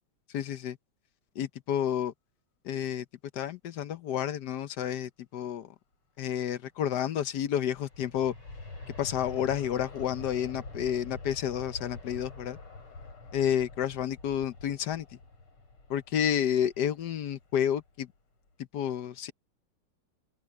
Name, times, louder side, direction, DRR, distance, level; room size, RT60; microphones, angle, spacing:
voice 1, 0.3-0.8 1.4-2.1 2.6-3.0 3.3-5.7 6.2-8.3 9.0-12.6 13.3-15.1 15.9-18.1 18.7-19.3, left 9 dB, 60° left, 1.2 m, -30 dB
Aircraft, 7.3-18.0 18.5-18.6, left 3 dB, 90° left, 7.0 m, -46 dB
open air
omnidirectional pair, 2.3 m